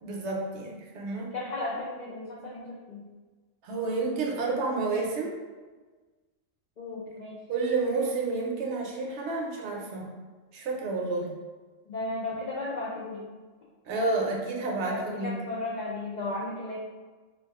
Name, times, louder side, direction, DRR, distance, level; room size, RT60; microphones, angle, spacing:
voice 1, 0.0-1.3 3.6-5.4 7.5-10.1 10.5-11.3 13.9-15.3, right 3 dB, 70° right, 0 dB, 0.9 m, -30 dB
voice 2, 1.3-3.0 6.8-7.4 11.9-13.3 14.9-16.8, left 2 dB, 75° left, -5 dB, 0.4 m, -35 dB
2.3 x 2.3 x 3.5 m, 1.3 s
omnidirectional pair, 1.3 m